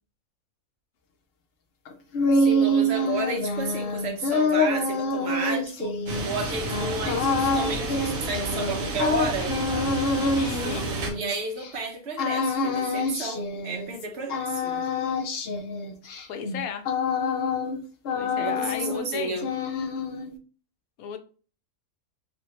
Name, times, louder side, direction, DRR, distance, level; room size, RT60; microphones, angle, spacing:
sound 1, 1.9-11.7 12.2-14.0 14.3-17.8 18.0-19.1 19.4-20.3, left 2 dB, 65° left, 0.6 m, -26 dB
voice 1, 2.3-6.0 6.2-9.6 11.1-14.8 18.4-19.5, right 3 dB, 55° right, 0.9 m, -32 dB
sound 2, 6.1-11.1, right 2 dB, 75° right, 1.1 m, -31 dB
voice 2, 10.1-10.9 16.3-16.9 18.2-19.5 21.0-21.2, left 7 dB, 85° left, 1.0 m, -34 dB
3.4 x 2.6 x 2.9 m
omnidirectional pair, 1.5 m